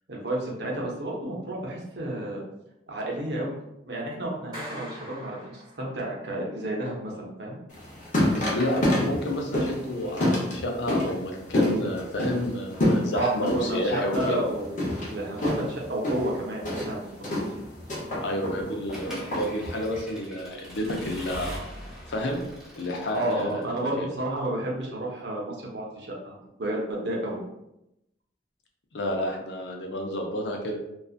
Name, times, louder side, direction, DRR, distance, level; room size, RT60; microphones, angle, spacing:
voice 1, 0.1-2.4 2.9-3.6 3.8-7.6 13.1-17.4 23.1-27.4, right 1 dB, 65° right, -2 dB, 0.7 m, -31 dB
Clapping, 4.5-6.2, right 1 dB, 25° right, 1.0 m, -42 dB
sound 1, 7.7-20.0, left 1 dB, 45° left, 0.7 m, -28 dB
voice 2, 8.5-14.4 18.2-21.5 22.1-22.4 22.7-24.1 28.9-30.7, left 1 dB, 80° left, 2 dB, 0.5 m, -30 dB
Accelerating revving vroom / Mechanisms, 18.9-23.8, equal, 5° right, 0.6 m, -41 dB
2.6 x 2.3 x 2.4 m, 0.86 s
head